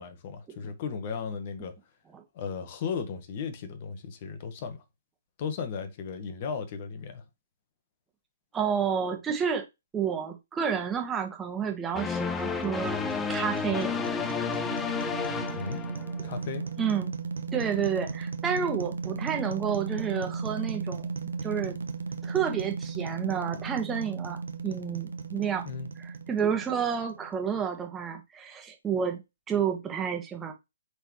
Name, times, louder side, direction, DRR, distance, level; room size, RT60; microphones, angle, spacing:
voice 1, 0.0-1.7 2.3-4.8 5.4-7.2 15.5-15.8 16.2-16.7 25.6-25.9, left 6 dB, 40° left, 1.4 m, -35 dB
voice 2, 8.5-9.6 9.9-13.0 13.3-14.4 16.8-17.1 17.5-21.1 21.4-21.8 22.2-25.7 26.0-29.2 29.5-30.5, right 7 dB, 15° right, 1.6 m, -30 dB
sound 1, 11.9-16.4, left 5 dB, 10° left, 0.7 m, -31 dB
sound 2, 12.2-27.3, right 5 dB, 75° right, 0.9 m, -36 dB
7.6 x 4.1 x 3.2 m
hypercardioid pair, 135°, 0 cm